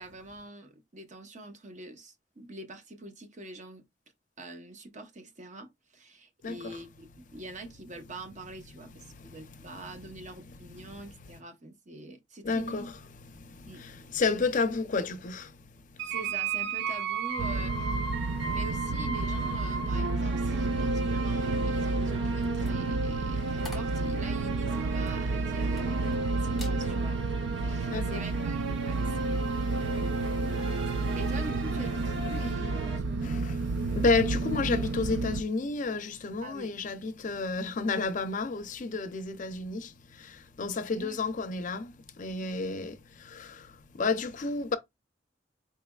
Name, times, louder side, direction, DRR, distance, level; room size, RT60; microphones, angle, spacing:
voice 1, 0.0-3.8 4.4-12.9 13.7-13.8 16.0-18.0 18.5-29.6 30.5-33.4 36.4-36.7 40.9-41.2, right 2 dB, 45° right, 0.8 m, -45 dB
voice 2, 6.4-6.8 9.1-9.7 10.5-10.6 10.8-11.4 12.4-13.0 13.2-16.1 18.2-18.5 27.9-28.2 29.3-31.2 33.2-44.7, left 4 dB, 45° left, 0.5 m, -32 dB
sound 1, 16.0-33.0, right 3 dB, 90° right, 0.9 m, -35 dB
sound 2, 17.4-35.4, right 3 dB, 70° right, 0.4 m, -31 dB
sound 3, 22.4-26.2 26.5-26.8 27.3-27.6, left 1 dB, ahead, 1.0 m, -49 dB
4.5 x 3.2 x 2.3 m
head